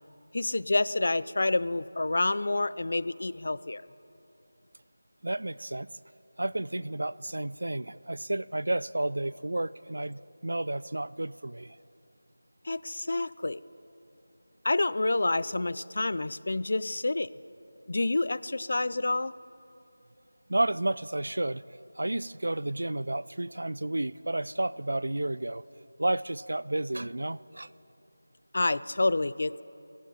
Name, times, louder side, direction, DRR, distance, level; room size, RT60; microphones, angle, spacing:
voice 1, 0.3-3.8 12.6-13.6 14.6-17.3 17.9-19.3 28.5-29.6, left 2 dB, 55° left, 18 dB, 0.4 m, -28 dB
voice 2, 5.2-5.9 6.4-11.8 20.5-21.6 22.0-25.6 26.0-27.7, right 1 dB, 75° right, 19 dB, 0.4 m, -31 dB
12.5 x 11.0 x 9.3 m, 2.8 s
figure-of-eight pair, 170°, 0 cm